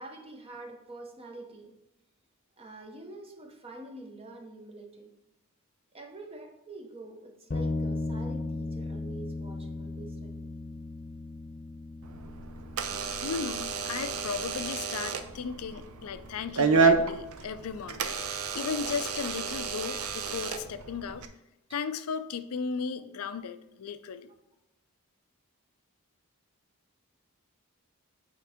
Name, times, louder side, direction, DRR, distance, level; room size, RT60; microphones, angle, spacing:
voice 1, 0.0-1.8 2.6-5.2 5.9-10.4 13.6-13.7, right 2 dB, 25° right, 4 dB, 0.8 m, -46 dB
sound 1, 7.5-17.0, left 3 dB, 40° left, 0.8 m, -38 dB
Door / Alarm, 12.0-21.3, right 5 dB, 80° right, 0.6 m, -30 dB
voice 2, 13.2-18.1 18.5-21.2 21.7-24.3, left 6 dB, 80° left, 11 dB, 0.4 m, -35 dB
8.3 x 4.5 x 3.5 m, 0.93 s
head